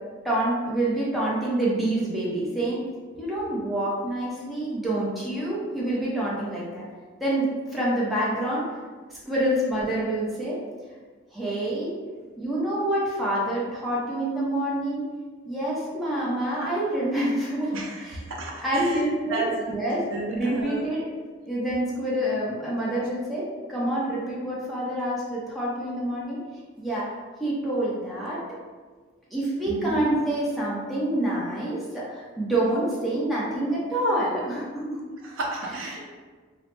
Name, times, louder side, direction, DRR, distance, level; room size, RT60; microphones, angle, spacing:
voice 1, 0.2-2.8 3.2-6.9 7.2-8.6 9.1-10.6 11.3-12.0 12.4-15.0 15.5-17.7 18.0-18.2 18.6-21.0 21.5-26.4 26.8-27.1 27.4-28.4 29.3-35.0 35.9-36.0, right 1 dB, ahead, -8 dB, 0.6 m, -27 dB
voice 2, 17.7-19.0 19.3-19.8 20.1-20.8 29.7-30.0 35.2-36.0, right 2 dB, 75° right, -1 dB, 0.5 m, -32 dB
3.0 x 2.0 x 3.1 m, 1.5 s
head